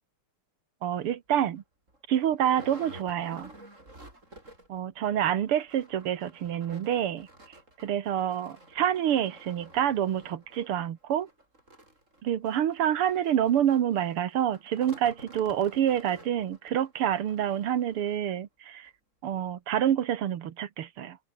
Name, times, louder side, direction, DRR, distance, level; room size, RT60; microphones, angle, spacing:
voice 1, 0.8-1.6 2.1-3.5 4.7-7.3 7.8-11.3 12.2-18.9 19.2-21.2, right 10 dB, 85° right, 2.3 m, -27 dB
sound 1, 0.9-1.1 1.6-1.7 1.9-4.8 5.1-5.2 5.5-18.3 18.9-19.0 19.3-19.4, right 1 dB, 35° right, 7.9 m, -51 dB
omnidirectional pair, 2.4 m